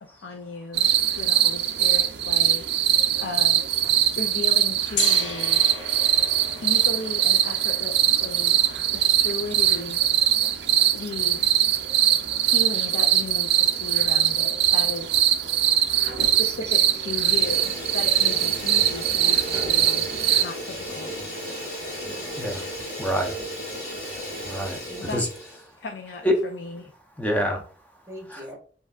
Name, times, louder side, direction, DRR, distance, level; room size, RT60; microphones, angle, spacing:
voice 1, 0.0-3.7 4.2-5.7 6.6-8.6 8.9-10.1 10.9-11.5 12.4-15.3 16.2-20.1 20.4-21.3 25.0-25.2 25.8-26.9, left 3 dB, 70° left, 0.4 m, -36 dB
sound 1, 0.7-20.4, right 11 dB, 60° right, 0.4 m, -22 dB
voice 2, 3.8-4.2 15.4-15.5 16.1-16.5 21.9-22.5 24.8-25.2 28.1-28.6, equal, 15° right, 1.0 m, -44 dB
Gong, 4.9-10.9, left 5 dB, 90° left, 0.8 m, -37 dB
Fire, 16.0-16.6 16.9-25.6, equal, 40° left, 2.1 m, -35 dB
voice 3, 22.4-22.7 23.0-23.3 24.4-25.3 26.2-26.3 27.2-27.6 28.3-28.4, equal, 10° left, 0.7 m, -26 dB
7.1 x 2.7 x 2.4 m
head